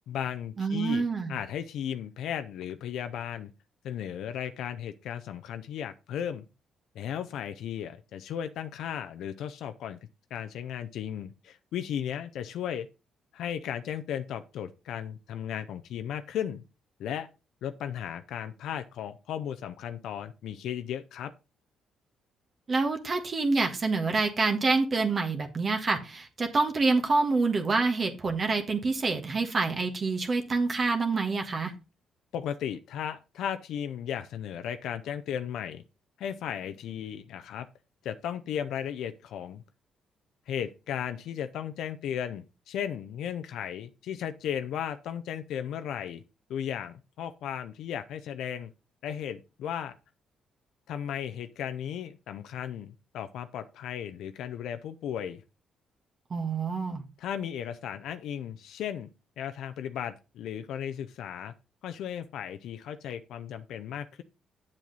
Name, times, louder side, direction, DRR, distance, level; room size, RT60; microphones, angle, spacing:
voice 1, 0.1-3.5 3.8-6.4 6.9-10.0 10.3-12.9 13.3-16.6 17.0-17.3 17.6-21.3 32.3-35.8 36.2-37.7 38.0-39.6 40.5-46.2 46.5-48.7 49.0-50.0 50.9-55.4 57.2-59.1 59.4-61.5 61.8-64.2, left 9 dB, 80° left, 0.6 m, -35 dB
voice 2, 0.6-1.4 22.7-31.7 56.3-57.0, right 3 dB, 40° right, 1.5 m, -27 dB
7.7 x 7.5 x 4.0 m
cardioid pair, 90°, 0 cm